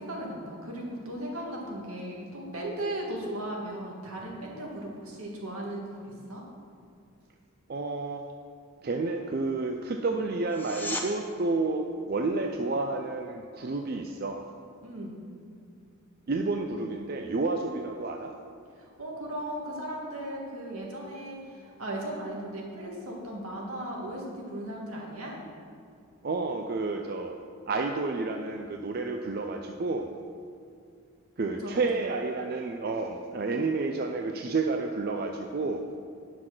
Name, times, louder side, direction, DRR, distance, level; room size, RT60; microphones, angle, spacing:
voice 1, 0.0-6.4 14.8-15.2 18.8-25.4 31.6-31.8, right 1 dB, 75° right, -2 dB, 2.0 m, -37 dB
voice 2, 7.7-8.2 8.8-14.4 16.3-18.3 26.2-27.4 27.7-30.1 31.4-35.8, right 3 dB, 45° right, 4 dB, 0.4 m, -30 dB
sound 1, 10.5-11.1 22.4-22.5, left 2 dB, 10° left, 0.7 m, -35 dB
9.8 x 6.1 x 6.0 m, 2.4 s
head